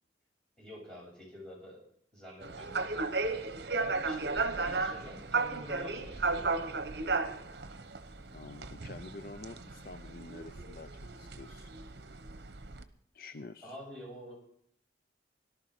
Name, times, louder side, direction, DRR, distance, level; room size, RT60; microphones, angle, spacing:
voice 1, 0.6-1.8 2.1-3.1 4.0-6.5 13.6-14.3, equal, 5° left, -4 dB, 7.6 m, -47 dB
sound 1, 2.4-12.8, right 3 dB, 65° right, 1.0 m, -35 dB
voice 2, 8.3-11.7 13.1-13.8, left 3 dB, 50° left, 11 dB, 0.5 m, -48 dB
18.0 x 12.0 x 4.8 m, 0.68 s
head